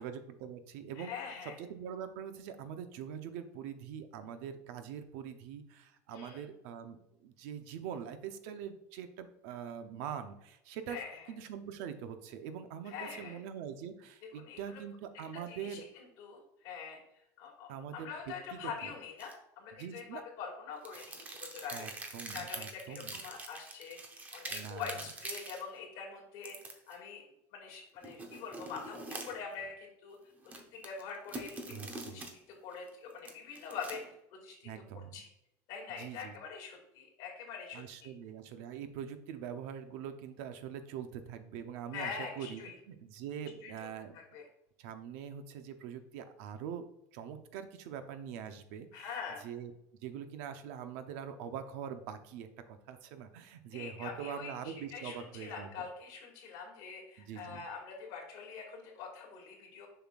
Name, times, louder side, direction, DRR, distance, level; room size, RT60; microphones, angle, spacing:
voice 1, 0.0-1.1 1.4-11.0 11.3-15.8 17.7-18.1 18.5-18.9 19.7-20.2 21.7-23.2 24.5-25.0 31.7-32.2 34.6-35.2 35.9-36.4 37.7-42.1 42.4-44.2 44.8-46.8 47.1-49.2 49.4-49.7 50.0-55.7 57.2-57.6, right 8 dB, 70° right, 9 dB, 0.7 m, -43 dB
voice 2, 1.0-1.6 6.1-6.4 10.9-11.2 12.8-13.4 14.3-14.8 15.3-17.0 17.4-21.9 22.3-24.0 24.3-27.2 27.5-30.2 30.7-34.0 34.3-34.7 34.9-35.3 35.7-38.1 41.9-42.7 43.6-43.7 44.1-44.4 48.9-49.4 53.7-59.9, left 6 dB, 55° left, -1 dB, 2.2 m, -44 dB
sound 1, 19.2-19.3 20.8-25.6 26.4-26.9 28.0-29.5 30.4-32.3 32.7-34.1, right 3 dB, 20° right, 0.8 m, -44 dB
7.0 x 5.7 x 2.4 m, 0.83 s
cardioid pair, 160°, 8 cm